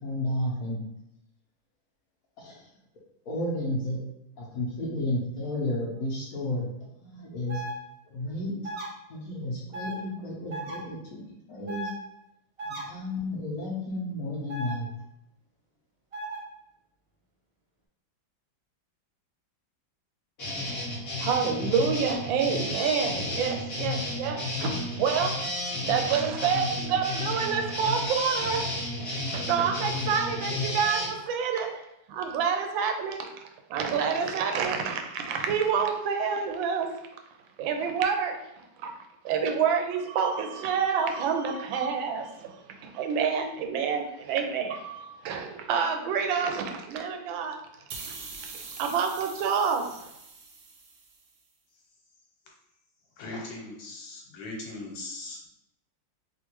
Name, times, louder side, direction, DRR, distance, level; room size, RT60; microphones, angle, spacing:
voice 1, 0.0-0.8 2.4-2.7 3.2-4.0 4.4-6.7 7.0-7.6 8.1-8.7 9.1-11.9 12.6-14.9, left 1 dB, 60° left, -3 dB, 1.0 m, -32 dB
sound 1, 7.5-7.7 8.6-8.9 9.7-10.0 10.5-10.8 11.7-11.9 12.6-12.8 14.5-14.7 16.1-16.4, right 2 dB, 45° right, 0.9 m, -35 dB
sound 2, 20.4-31.1, left 1 dB, 40° left, 1.1 m, -32 dB
voice 2, 21.2-25.4 25.9-28.7 29.1-31.8 32.1-33.3 33.7-37.0 37.6-38.4 38.8-38.9 39.2-47.6 48.8-50.0, right 6 dB, 80° right, 4 dB, 1.3 m, -28 dB
sound 3, 47.9-51.3, right 4 dB, 65° right, 1.0 m, -43 dB
voice 3, 53.2-55.5, left 2 dB, 80° left, 0 dB, 1.5 m, -39 dB
3.6 x 2.5 x 2.9 m, 0.83 s
omnidirectional pair, 2.1 m